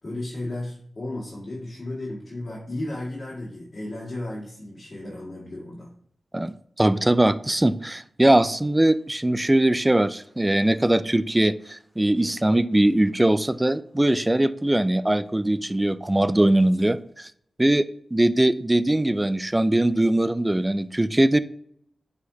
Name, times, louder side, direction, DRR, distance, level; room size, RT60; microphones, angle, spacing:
voice 1, 0.0-5.9, left 1 dB, 40° left, -5 dB, 2.0 m, -34 dB
voice 2, 6.8-17.3 17.6-21.4, right 1 dB, 15° right, 14 dB, 0.3 m, -21 dB
9.1 x 4.3 x 2.8 m, 0.65 s
wide cardioid pair, 85°, 0 cm